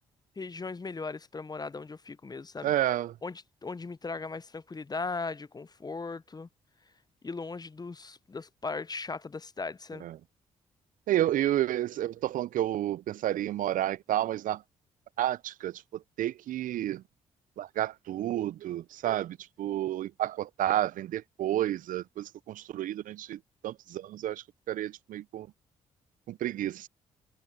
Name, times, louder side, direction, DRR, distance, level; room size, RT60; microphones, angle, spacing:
voice 1, 0.4-2.7 3.2-6.5 7.2-10.0, left 4 dB, 25° left, 0.8 m, -38 dB
voice 2, 2.6-3.2 10.0-10.2 11.1-14.6 15.2-17.0 17.6-25.5 26.3-26.9, right 13 dB, 65° right, 0.6 m, -31 dB
hypercardioid pair, 45°, 15 cm